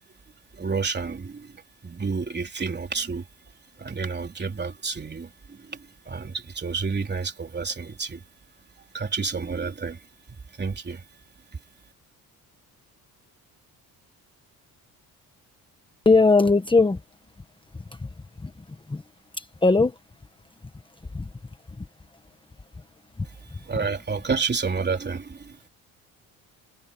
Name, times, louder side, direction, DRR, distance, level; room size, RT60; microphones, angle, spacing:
voice 1, 0.5-3.3 3.8-8.2 8.8-11.1 11.5-11.6 23.3-25.6, right 5 dB, 30° right, 3.7 m, -30 dB
voice 2, 16.0-17.0 18.4-18.5 18.9-19.0 19.4-19.9 21.1-21.3, left 3 dB, 15° left, 1.3 m, -19 dB
cardioid pair, 105°, 37 cm